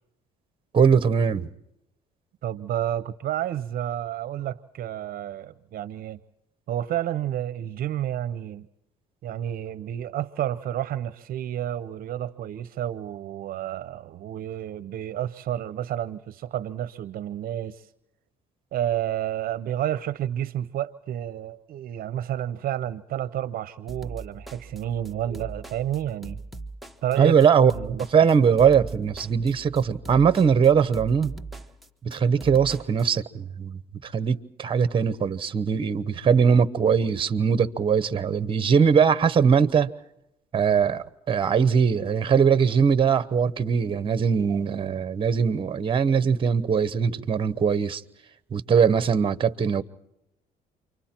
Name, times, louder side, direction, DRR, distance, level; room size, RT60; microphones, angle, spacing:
voice 1, 0.7-1.5 27.2-27.7 28.1-31.3 32.0-39.9 40.5-48.0 48.5-49.8, right 6 dB, 30° right, 1.0 m, -21 dB
voice 2, 2.4-6.2 6.7-8.7 9.2-17.8 18.7-26.4 27.0-27.4 27.7-28.0, right 11 dB, 60° right, 0.7 m, -30 dB
sound 1, 23.9-33.1, right 3 dB, ahead, 1.0 m, -40 dB
29.0 x 24.5 x 4.4 m
cardioid pair, 110°, 17 cm